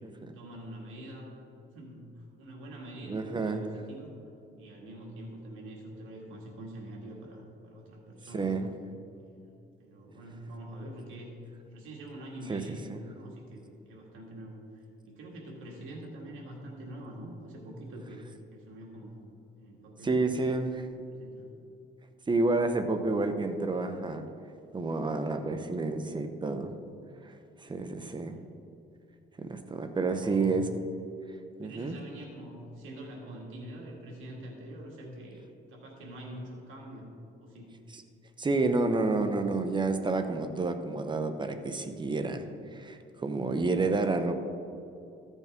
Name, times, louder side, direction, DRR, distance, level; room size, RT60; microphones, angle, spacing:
voice 1, 0.3-1.4 1.7-4.1 4.6-8.5 9.2-9.5 9.8-11.4 11.7-18.2 18.5-19.2 19.6-20.3 20.9-21.6 28.3-28.5 30.2-30.6 31.6-37.1 37.4-37.8, right 1 dB, 85° right, -2 dB, 2.0 m, -45 dB
voice 2, 3.1-3.7 8.3-8.7 12.5-12.6 12.9-13.0 20.0-20.9 22.3-24.2 24.7-26.7 27.6-28.3 29.4-30.7 31.6-32.0 37.9-38.0 38.4-42.5 42.7-44.3, right 3 dB, 25° right, 8 dB, 0.9 m, -29 dB
14.0 x 8.3 x 3.6 m, 2.6 s
cardioid pair, 90°, 20 cm